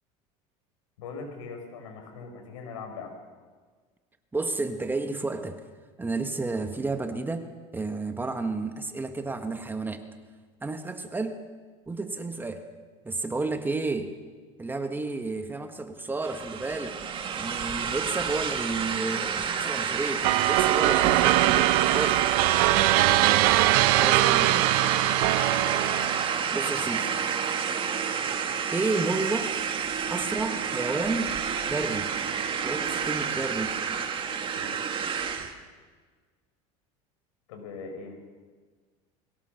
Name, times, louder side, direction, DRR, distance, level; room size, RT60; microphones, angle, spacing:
voice 1, 1.0-3.2 22.9-23.4 24.0-24.1 33.3-33.6 34.5-34.9 37.5-38.1, left 4 dB, 90° left, 4 dB, 5.5 m, -41 dB
voice 2, 4.3-5.6 6.0-10.0 10.6-11.4 11.9-12.6 13.0-14.1 14.6-17.0 17.3-22.2 24.0-24.7 26.5-27.2 28.7-29.5 30.1-31.4 31.7-32.1 32.6-33.8, right 3 dB, 10° right, 7 dB, 1.6 m, -31 dB
sound 1, 16.2-35.5, right 7 dB, 30° right, 2.1 m, -29 dB
sound 2, 20.2-26.5, right 17 dB, 70° right, 0.7 m, -22 dB
22.0 x 18.0 x 6.6 m, 1.5 s
supercardioid pair, 120°, 16 cm